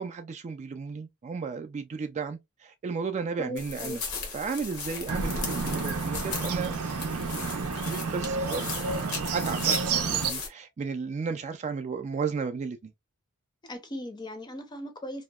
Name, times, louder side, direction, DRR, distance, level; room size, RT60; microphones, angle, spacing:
voice 1, 0.0-4.0 4.3-6.7 7.4-12.9, right 5 dB, 30° right, 0.3 m, -34 dB
voice 2, 3.4-4.0 13.6-15.2, equal, 20° left, 0.5 m, -38 dB
sound 1, 3.6-10.5, left 4 dB, 80° left, 0.9 m, -37 dB
Bird, 5.1-10.3, right 5 dB, 85° right, 0.5 m, -30 dB
2.7 x 2.1 x 2.2 m
head